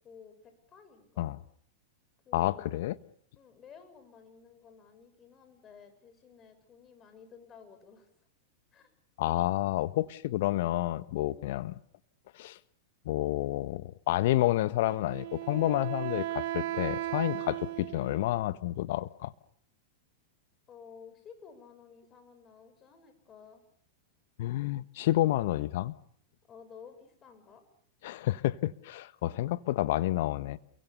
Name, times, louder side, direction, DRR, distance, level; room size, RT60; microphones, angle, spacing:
voice 1, 0.0-1.3 2.3-2.9 3.4-8.1 8.7-8.9 11.3-11.7 20.7-23.6 26.5-27.6, left 6 dB, 30° left, 8 dB, 6.9 m, -53 dB
voice 2, 2.3-3.0 9.2-11.7 12.3-12.6 13.0-19.3 24.4-25.9 28.0-30.6, left 15 dB, 60° left, 15 dB, 1.3 m, -29 dB
Wind instrument woodwind instrument, 14.8-18.5, right 14 dB, 60° right, 1.6 m, -36 dB
29.0 x 23.0 x 7.0 m, 0.63 s
hypercardioid pair, 100°, 0 cm